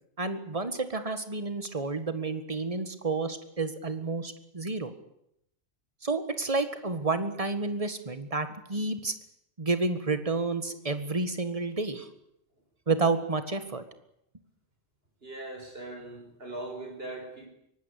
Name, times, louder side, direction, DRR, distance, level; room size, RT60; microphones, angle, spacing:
voice 1, 0.2-4.9 6.0-9.1 9.6-12.1 12.9-13.8, right 3 dB, 30° right, 10 dB, 1.8 m, -30 dB
voice 2, 15.2-17.5, right 2 dB, 60° right, 4 dB, 5.5 m, -40 dB
23.5 x 19.0 x 8.4 m, 0.79 s
omnidirectional pair, 1.1 m